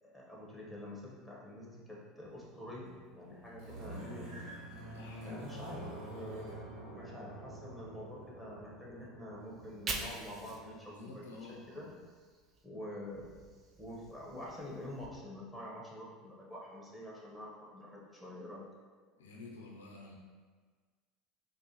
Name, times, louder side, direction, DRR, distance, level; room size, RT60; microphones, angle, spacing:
voice 1, 0.0-4.4 5.2-6.6 6.9-11.9 12.6-13.3 13.7-18.7, left 1 dB, ahead, -4 dB, 1.2 m, -47 dB
sound 1, 2.2-10.8, right 1 dB, 75° right, 1.1 m, -48 dB
voice 2, 4.8-5.8 10.8-11.9 19.2-20.2, left 3 dB, 85° left, -1 dB, 0.5 m, -50 dB
Fire, 9.5-12.6 13.0-15.1, right 3 dB, 35° right, 0.5 m, -46 dB
4.5 x 2.2 x 3.0 m, 1.5 s
hypercardioid pair, 80°, 0 cm